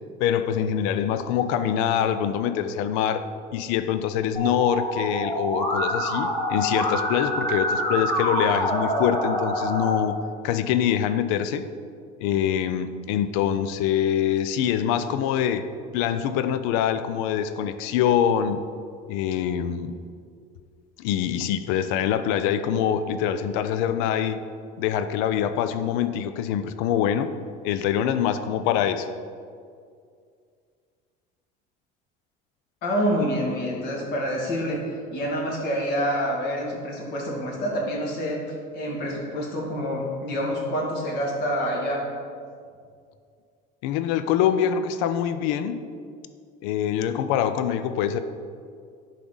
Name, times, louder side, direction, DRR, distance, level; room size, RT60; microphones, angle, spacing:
voice 1, 0.2-3.2 3.5-10.2 10.4-11.7 12.2-15.7 15.9-18.6 19.1-19.9 21.0-24.4 24.8-27.3 27.6-29.1 43.8-45.8 46.6-48.2, left 9 dB, 80° left, 11 dB, 0.5 m, -24 dB
Musical instrument, 4.4-9.9, equal, 15° left, 1.3 m, -26 dB
voice 2, 32.8-34.8 35.1-38.4 38.7-42.0, equal, 55° left, -2 dB, 2.2 m, -27 dB
10.5 x 5.0 x 3.9 m, 2.2 s
cardioid pair, 145°, 20 cm